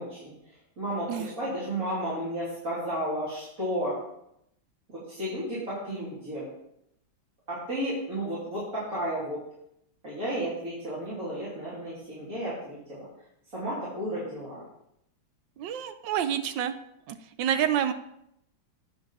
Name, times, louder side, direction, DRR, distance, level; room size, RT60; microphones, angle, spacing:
voice 1, 0.0-3.9 4.9-6.4 7.5-9.4 10.0-13.0 13.5-14.6, equal, 45° right, -10 dB, 3.5 m, -33 dB
voice 2, 15.6-16.7 17.1-17.9, right 9 dB, 75° right, 10 dB, 1.3 m, -28 dB
9.3 x 4.7 x 6.1 m, 0.78 s
omnidirectional pair, 2.1 m